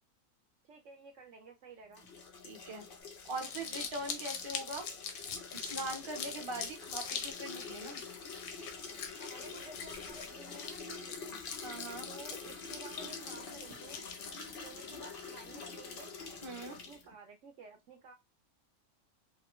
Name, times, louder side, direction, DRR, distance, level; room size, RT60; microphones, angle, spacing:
voice 1, 0.6-2.1 9.2-11.3 12.1-14.1 14.6-16.2 16.6-18.1, right 5 dB, 65° right, 0.8 m, -53 dB
sound 1, 1.9-17.0, left 5 dB, 60° left, 0.6 m, -46 dB
voice 2, 2.4-2.8 3.3-4.9 5.5-8.0 11.3-12.1 16.4-16.8, right 2 dB, 30° right, 0.6 m, -42 dB
Crumpling crinkling, 3.1-14.9, left 6 dB, 80° left, 1.2 m, -43 dB
3.0 x 2.1 x 2.9 m
omnidirectional pair, 1.6 m